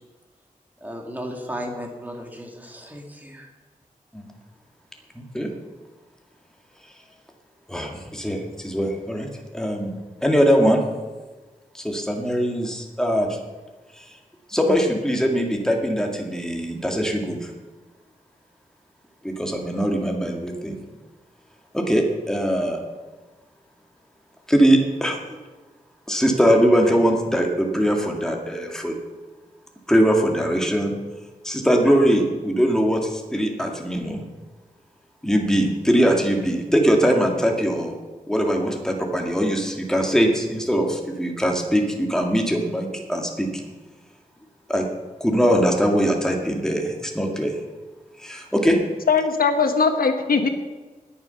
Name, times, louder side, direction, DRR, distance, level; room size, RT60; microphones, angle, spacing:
voice 1, 0.8-3.5, equal, 10° right, 1 dB, 2.1 m, -35 dB
voice 2, 5.2-5.5 7.7-9.3 9.5-9.9 10.2-10.8 11.7-13.3 14.5-17.4 19.2-20.8 21.7-22.8 24.5-25.2 26.1-28.9 29.9-30.9 31.4-33.0 33.3-34.2 35.2-38.0 38.3-43.5 44.7-44.9 45.2-47.6 48.2-48.8, equal, 5° left, 1 dB, 2.1 m, -21 dB
voice 3, 49.1-50.5, left 5 dB, 90° left, 6 dB, 1.4 m, -20 dB
19.5 x 7.2 x 5.8 m, 1.3 s
wide cardioid pair, 120°, 15 cm